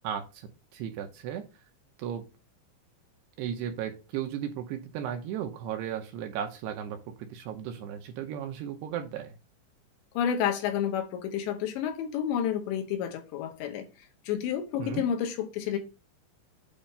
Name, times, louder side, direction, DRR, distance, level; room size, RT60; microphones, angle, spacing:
voice 1, 0.0-1.6 2.0-2.2 3.4-9.4 14.8-15.0, right 9 dB, 75° right, 2.7 m, -35 dB
voice 2, 10.1-13.9 14.2-15.8, left 9 dB, 80° left, 3.2 m, -30 dB
8.8 x 3.1 x 5.5 m
omnidirectional pair, 5.2 m